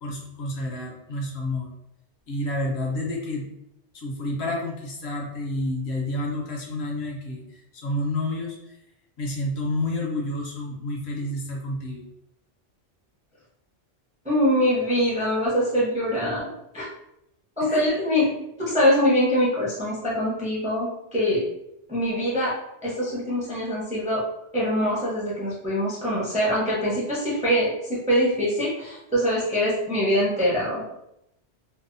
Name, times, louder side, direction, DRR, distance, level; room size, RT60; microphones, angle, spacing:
voice 1, 0.0-1.7 2.3-3.5 3.9-8.6 9.2-12.1 17.7-18.0, left 1 dB, 65° left, -1 dB, 0.8 m, -29 dB
voice 2, 14.2-16.9 17.6-18.3 18.7-21.4 21.9-22.5 22.8-24.2 24.5-30.8, equal, 10° right, -6 dB, 0.5 m, -23 dB
2.6 x 2.1 x 2.5 m, 0.81 s
omnidirectional pair, 1.2 m